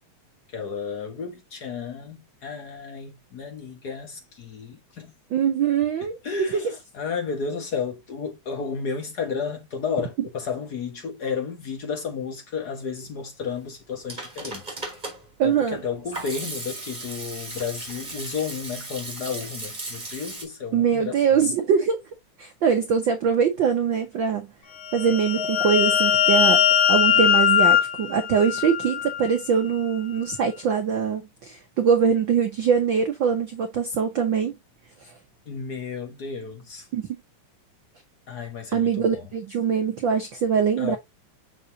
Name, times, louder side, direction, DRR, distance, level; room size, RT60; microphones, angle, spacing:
voice 1, 0.5-5.1 6.2-14.8 15.4-21.5 35.4-36.8 38.3-39.2 40.8-41.0, left 6 dB, 50° left, 1.3 m, -32 dB
voice 2, 5.3-6.5 15.4-15.8 20.7-22.0 22.4-24.5 24.9-34.6 35.0-35.1 36.9-37.0 38.7-41.0, right 7 dB, 75° right, 1.1 m, -23 dB
Hands / Sink (filling or washing), 13.8-20.4, right 2 dB, 15° right, 2.4 m, -36 dB
sound 1, 24.8-29.3, left 9 dB, 80° left, 2.3 m, -20 dB
6.5 x 5.5 x 2.7 m
omnidirectional pair, 3.3 m